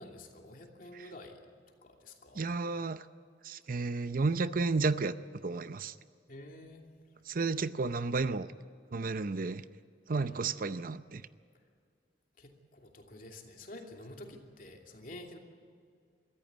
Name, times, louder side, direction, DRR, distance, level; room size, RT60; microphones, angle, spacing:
voice 1, 0.0-1.4 1.8-2.5 6.3-6.8 10.1-10.4 12.4-15.4, left 1 dB, 50° left, 2.8 m, -49 dB
voice 2, 2.3-3.1 3.4-5.1 5.4-5.9 7.3-8.5 8.9-9.6 10.1-11.2, right 3 dB, 50° right, 0.6 m, -32 dB
23.0 x 14.5 x 9.4 m
head